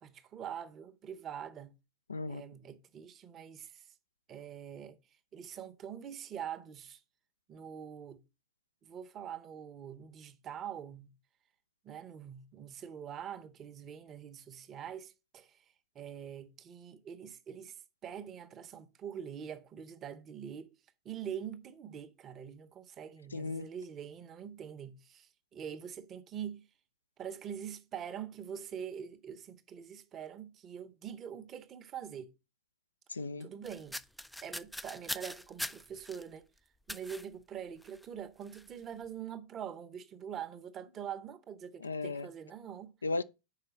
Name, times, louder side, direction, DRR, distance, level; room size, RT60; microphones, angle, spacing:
voice 1, 0.0-1.7 2.3-3.9 4.3-5.0 5.3-7.0 7.5-8.2 8.8-11.1 11.8-15.6 15.9-20.7 21.0-26.6 27.2-32.3 33.4-34.0 34.4-36.5 36.9-42.9, right 8 dB, 30° right, 0.8 m, -44 dB
voice 2, 2.1-2.4 23.3-23.7 33.1-33.5 41.8-42.3 43.0-43.2, left 3 dB, 75° left, 0.4 m, -35 dB
sound 1, 33.6-36.2 36.9-37.3 37.8-38.0 38.4-38.6, left 1 dB, ahead, 0.4 m, -42 dB
5.7 x 4.7 x 6.2 m
figure-of-eight pair, 90°, 0 cm